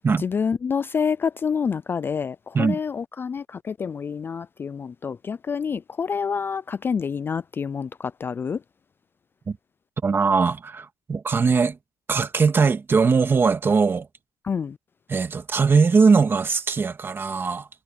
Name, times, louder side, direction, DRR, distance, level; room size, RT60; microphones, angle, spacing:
voice 1, 0.2-8.6 14.5-14.8, left 6 dB, 25° left, 0.3 m, -27 dB
voice 2, 10.0-11.8 12.1-14.1 15.1-17.7, right 5 dB, 30° right, 1.9 m, -20 dB
cardioid pair, 135°, 8 cm